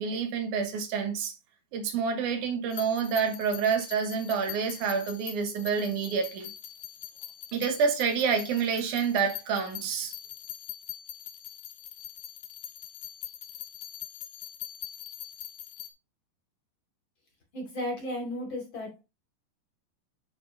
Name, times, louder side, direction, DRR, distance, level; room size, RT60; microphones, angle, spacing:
voice 1, 0.0-1.4 1.7-6.5 7.5-10.1, right 6 dB, 75° right, 1.8 m, -28 dB
sound 1, 2.7-15.9, left 12 dB, 75° left, 2.5 m, -43 dB
voice 2, 17.5-19.0, left 1 dB, 35° left, 2.6 m, -34 dB
10.0 x 4.4 x 2.7 m
omnidirectional pair, 5.2 m